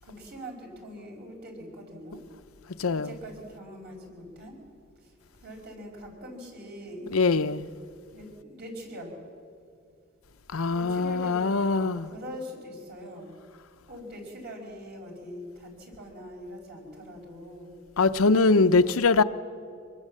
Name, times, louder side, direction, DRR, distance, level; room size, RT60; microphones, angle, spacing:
voice 1, 0.0-2.2 2.9-4.6 5.0-7.6 8.1-9.2 10.7-13.4 13.9-17.8 18.8-19.1, equal, 50° right, 5.4 m, -43 dB
voice 2, 2.8-3.1 7.1-7.7 10.5-12.1 18.0-19.2, left 3 dB, 90° left, 0.7 m, -22 dB
25.0 x 21.5 x 7.5 m
head